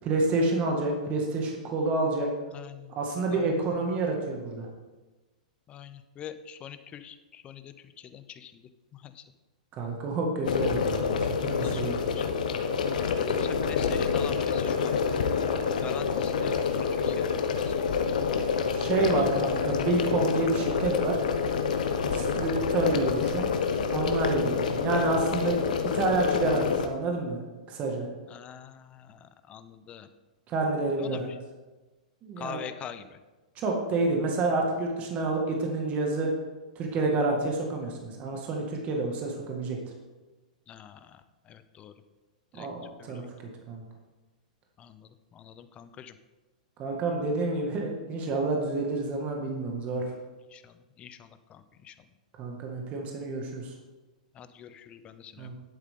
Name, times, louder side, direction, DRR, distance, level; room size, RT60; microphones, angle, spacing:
voice 1, 0.0-2.3 3.0-4.7 9.8-12.0 18.7-21.2 22.0-23.5 23.9-25.6 25.9-27.4 27.7-28.1 30.5-31.3 32.2-32.6 33.6-36.3 36.8-39.8 42.5-43.2 43.7-43.8 46.8-50.0 52.4-53.7 55.4-55.5, right 3 dB, 30° right, 1 dB, 2.0 m, -28 dB
voice 2, 2.5-2.9 3.3-3.5 5.7-8.6 8.9-9.2 11.6-15.1 15.8-17.9 28.3-30.1 31.0-31.4 32.4-33.1 40.7-41.2 41.5-41.9 42.5-42.7 43.0-43.3 44.8-46.1 50.5-51.9 54.3-55.5, left 9 dB, 25° left, 12 dB, 0.7 m, -45 dB
sound 1, 10.4-26.9, left 6 dB, 75° left, 1.1 m, -27 dB
11.0 x 8.1 x 3.8 m, 1.2 s
hypercardioid pair, 125°, 4 cm